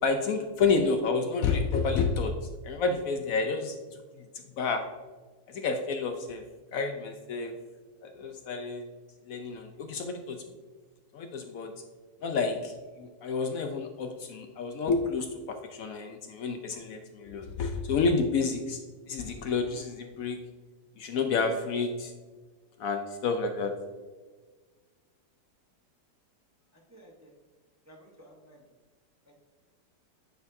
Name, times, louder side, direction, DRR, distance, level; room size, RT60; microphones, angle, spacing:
voice 1, 0.0-2.3 2.6-3.7 4.6-4.8 5.5-6.4 6.7-7.5 8.0-8.9 9.3-10.4 11.1-11.7 12.2-12.7 13.0-18.8 19.1-20.4 21.0-22.1 22.8-23.7, left 4 dB, 70° left, 5 dB, 0.8 m, -29 dB
voice 2, 26.9-27.4 27.9-28.6 29.3-29.4, right 1 dB, 25° right, -1 dB, 0.3 m, -54 dB
9.2 x 4.5 x 2.6 m, 1.4 s
omnidirectional pair, 1.9 m